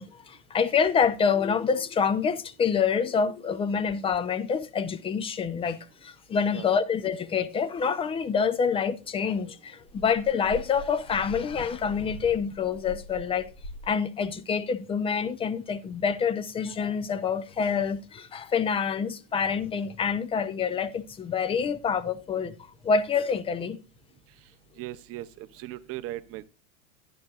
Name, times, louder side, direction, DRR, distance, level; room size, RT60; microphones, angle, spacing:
voice 1, 0.0-13.5 13.8-22.5 22.8-23.8, left 6 dB, 15° left, 0.4 m, -27 dB
sound 1, 9.9-13.9, equal, 65° left, 3.0 m, -43 dB
voice 2, 24.8-26.4, right 15 dB, 35° right, 0.7 m, -38 dB
10.5 x 10.0 x 2.4 m
supercardioid pair, 120°, 39 cm